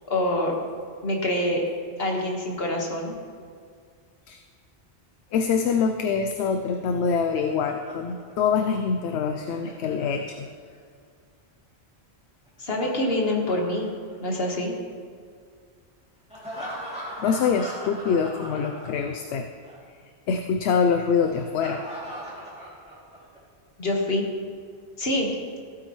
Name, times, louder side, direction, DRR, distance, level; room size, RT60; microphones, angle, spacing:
voice 1, 0.1-0.5 1.0-1.6 2.0-3.1 12.6-13.9 14.2-14.7 23.8-24.3 25.0-25.3, left 1 dB, 60° left, 0 dB, 1.8 m, -25 dB
voice 2, 5.3-10.5 17.2-19.5 20.3-21.8, left 6 dB, 80° left, 6 dB, 0.9 m, -25 dB
Laughter, 6.7-10.8 12.5-14.6 16.3-19.4 19.6-19.8 21.3-23.4, equal, 5° right, 2.6 m, -40 dB
15.5 x 8.6 x 3.1 m, 2.1 s
omnidirectional pair, 1.1 m